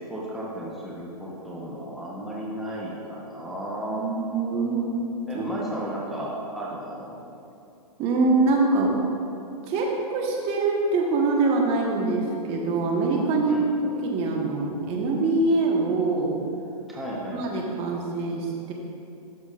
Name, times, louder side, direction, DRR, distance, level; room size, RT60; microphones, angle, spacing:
voice 1, 0.1-4.1 5.3-7.2 13.5-13.8 16.9-17.4, right 1 dB, ahead, -6 dB, 0.9 m, -34 dB
voice 2, 3.9-4.9 5.3-5.5 8.0-8.9 9.7-16.3 17.3-18.7, right 3 dB, 30° right, -1 dB, 1.2 m, -24 dB
12.5 x 6.3 x 2.5 m, 2.7 s
hypercardioid pair, 135°, 20 cm